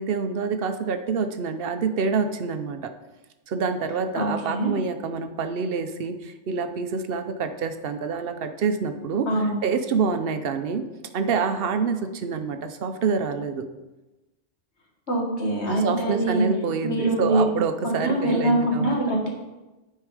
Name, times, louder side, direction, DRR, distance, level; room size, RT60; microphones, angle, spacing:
voice 1, 0.0-2.9 3.5-9.3 9.6-10.8 11.1-13.6 15.7-19.0, right 5 dB, 60° right, 8 dB, 0.8 m, -27 dB
voice 2, 4.2-4.7 9.3-9.5 15.1-16.5 16.8-17.5 18.0-19.3, right 1 dB, 70° left, -1 dB, 1.9 m, -23 dB
9.5 x 4.5 x 4.8 m, 1.1 s
omnidirectional pair, 1.2 m